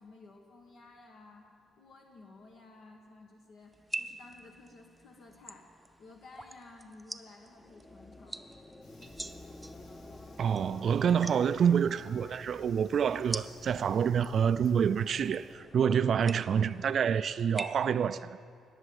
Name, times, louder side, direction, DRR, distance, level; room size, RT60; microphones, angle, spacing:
voice 1, 0.0-1.5 1.8-5.7 6.0-8.4, left 3 dB, 70° left, 1.6 m, -54 dB
sound 1, 3.7-17.7, right 2 dB, 10° right, 0.7 m, -46 dB
sound 2, 7.5-16.8, left 2 dB, 20° left, 0.8 m, -51 dB
Fire, 8.8-15.5, left 1 dB, 90° left, 3.4 m, -60 dB
voice 2, 10.4-18.4, right 7 dB, 55° right, 0.4 m, -27 dB
20.0 x 7.3 x 7.9 m
cardioid pair, 90°, 0 cm